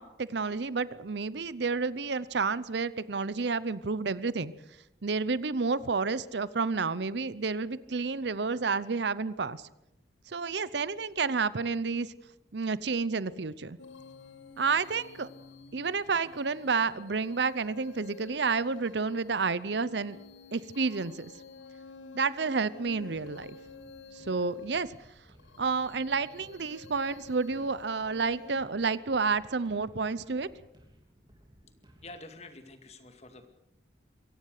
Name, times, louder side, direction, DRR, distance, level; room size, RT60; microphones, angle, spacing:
voice 1, 0.0-4.5 5.0-9.6 10.3-12.1 12.5-13.8 14.6-15.3 15.7-20.2 20.5-21.3 22.1-23.6 24.1-25.0 25.6-30.5, right 4 dB, 70° right, 18 dB, 0.7 m, -30 dB
sound 1, 13.8-28.6, left 4 dB, 90° left, 1.3 m, -51 dB
sound 2, 22.8-32.1, right 1 dB, 25° right, 3.2 m, -59 dB
voice 2, 32.0-33.5, left 2 dB, 35° left, 7 dB, 2.2 m, -47 dB
23.0 x 17.0 x 6.6 m, 0.86 s
head